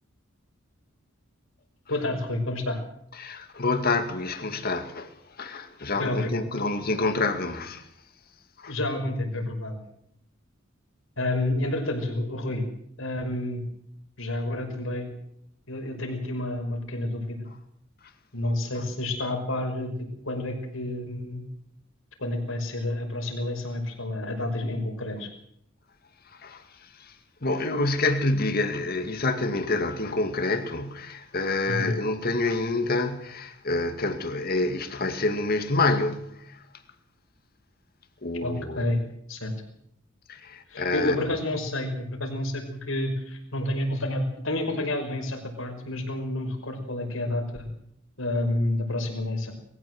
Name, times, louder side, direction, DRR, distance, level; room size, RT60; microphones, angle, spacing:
voice 1, 1.9-2.8 5.9-6.5 8.7-9.8 11.2-12.7 13.0-13.6 14.2-15.1 15.7-17.5 18.3-21.4 22.2-25.3 31.7-31.9 38.4-39.0 39.3-39.5 40.7-47.7 48.2-49.5, left 1 dB, 70° left, 5.7 m, -29 dB
voice 2, 3.2-5.1 5.4-7.8 8.6-8.7 26.4-26.6 27.4-36.6 38.2-38.9 40.3-41.2, left 2 dB, 45° left, 2.3 m, -27 dB
21.5 x 15.5 x 7.9 m
head